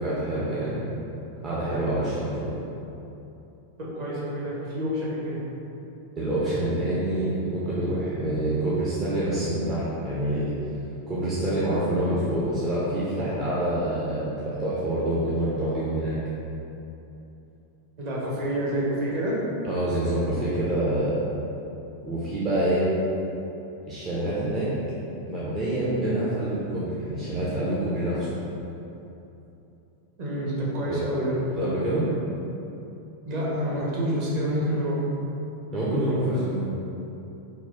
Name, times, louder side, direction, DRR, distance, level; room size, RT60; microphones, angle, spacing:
voice 1, 0.0-0.8 1.4-2.6 6.2-10.5 11.1-16.2 19.7-21.2 22.0-22.9 23.9-24.7 25.3-28.3 30.9-31.2 31.5-32.1 35.7-36.7, right 1 dB, 30° right, -9 dB, 0.7 m, -26 dB
voice 2, 3.8-5.4 18.0-19.3 30.2-31.3 33.3-35.0, equal, 45° right, -6 dB, 1.2 m, -28 dB
4.0 x 2.3 x 4.0 m, 2.9 s
figure-of-eight pair, 90°, 0 cm